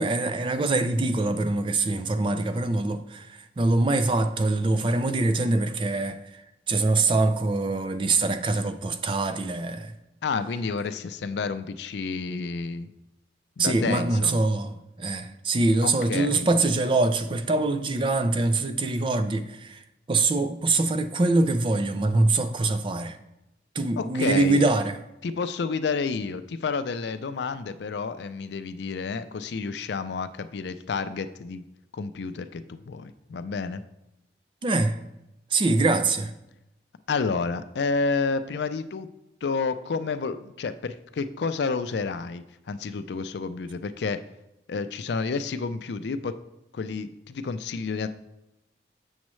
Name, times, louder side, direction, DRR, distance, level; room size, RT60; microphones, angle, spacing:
voice 1, 0.0-6.2 6.7-9.9 13.6-19.8 20.1-23.2 23.8-25.0 34.6-35.0 35.5-36.3, right 2 dB, 30° right, 0.4 m, -24 dB
voice 2, 10.2-12.9 13.6-14.4 15.8-16.5 24.0-24.6 25.2-31.6 31.9-33.8 37.1-39.1 39.4-44.2 44.7-46.3 46.7-48.1, left 4 dB, 75° left, 0.4 m, -30 dB
7.3 x 6.2 x 3.1 m
head